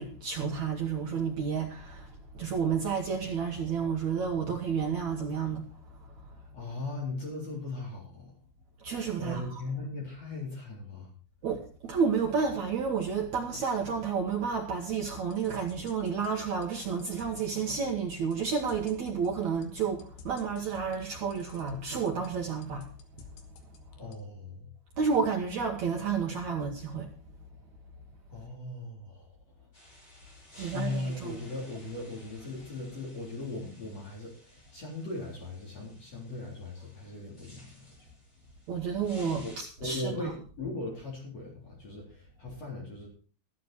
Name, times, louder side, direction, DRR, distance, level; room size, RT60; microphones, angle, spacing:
voice 1, 0.0-6.3 8.8-9.6 11.4-22.9 25.0-27.1 30.6-31.4 38.7-40.3, right 6 dB, 70° right, 1.7 m, -31 dB
voice 2, 6.5-8.3 9.2-11.1 24.0-24.7 28.3-29.3 29.6-29.7 30.5-38.1 39.2-43.1, left 2 dB, 35° left, 4.4 m, -38 dB
sound 1, 15.0-24.1, left 7 dB, 70° left, 3.6 m, -52 dB
sound 2, 29.7-39.6, equal, 15° left, 4.7 m, -56 dB
13.0 x 12.0 x 4.4 m
omnidirectional pair, 5.2 m